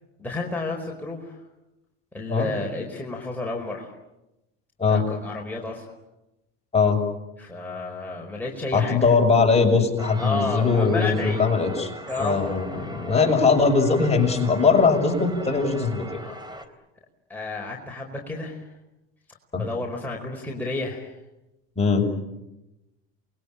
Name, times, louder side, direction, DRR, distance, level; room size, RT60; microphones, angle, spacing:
voice 1, 0.2-1.4 2.1-3.9 4.9-5.9 7.4-9.0 10.1-11.4 12.1-12.5 16.2-16.5 17.3-18.6 19.6-21.1, left 2 dB, 5° left, -1 dB, 4.8 m, -31 dB
voice 2, 8.7-11.9 12.2-16.2 19.5-19.7 21.8-22.1, left 4 dB, 20° left, 2 dB, 6.4 m, -20 dB
sound 1, 10.0-16.7, right 2 dB, 15° right, 3.5 m, -40 dB
28.0 x 21.5 x 9.0 m, 0.96 s
supercardioid pair, 90°, 30 cm